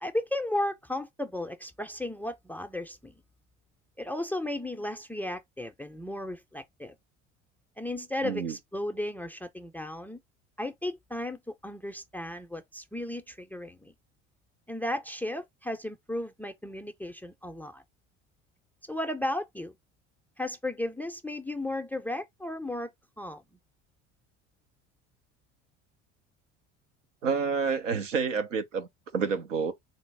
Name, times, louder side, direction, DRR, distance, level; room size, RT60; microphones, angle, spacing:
voice 1, 0.0-3.1 4.0-6.9 7.8-10.2 10.6-13.9 14.7-17.8 18.9-19.7 20.4-22.9 23.2-23.4, left 1 dB, 5° left, 0.4 m, -34 dB
voice 2, 8.2-8.5 27.2-29.7, right 5 dB, 85° right, 0.7 m, -29 dB
4.0 x 2.0 x 3.3 m
hypercardioid pair, 65°, 36 cm